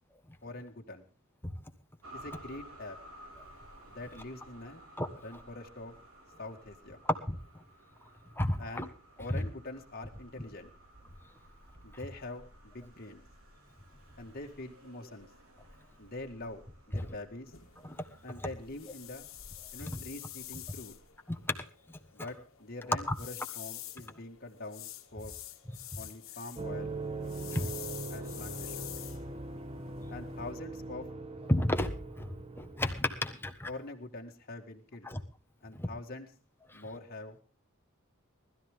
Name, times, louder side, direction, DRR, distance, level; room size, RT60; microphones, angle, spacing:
voice 1, 0.4-1.1 2.1-3.0 3.9-4.8 5.2-5.9 6.4-7.0 8.6-8.9 9.2-10.7 11.8-13.2 14.2-15.3 16.0-17.5 18.2-19.3 19.7-21.0 22.1-25.3 26.0-27.0 27.5-27.8 28.1-28.9 30.1-31.1 33.7-35.1 35.6-36.3 36.7-37.4, left 2 dB, 45° left, 2 dB, 1.9 m, -44 dB
sound 1, 2.0-21.1, right 1 dB, 90° right, 4.0 m, -55 dB
voice 2, 8.4-8.8 9.3-9.5 16.9-17.0 17.8-18.0 19.8-20.0 21.3-21.6 25.7-25.8 27.5-27.7 31.5-33.7 35.0-35.2 35.8-35.9, left 1 dB, 10° left, 6 dB, 1.4 m, -32 dB
sound 2, 17.5-30.5, left 14 dB, 65° left, 1.7 m, -48 dB
sound 3, 26.5-32.9, right 2 dB, 25° right, 1.1 m, -41 dB
20.5 x 13.0 x 3.7 m, 0.36 s
head